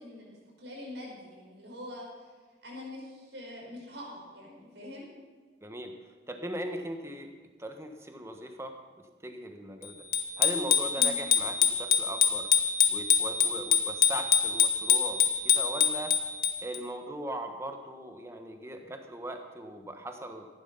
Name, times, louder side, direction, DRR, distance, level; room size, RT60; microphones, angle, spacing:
voice 1, 0.0-2.3 2.6-5.1 10.9-11.2, left 1 dB, 85° right, -3 dB, 5.4 m, -44 dB
voice 2, 5.6-7.3 7.6-10.0 10.4-12.5 12.9-16.2 16.6-20.5, right 1 dB, 15° right, 5 dB, 1.2 m, -39 dB
Bicycle bell, 10.1-16.8, left 7 dB, 55° left, 1.1 m, -25 dB
14.5 x 11.5 x 5.7 m, 1.4 s
head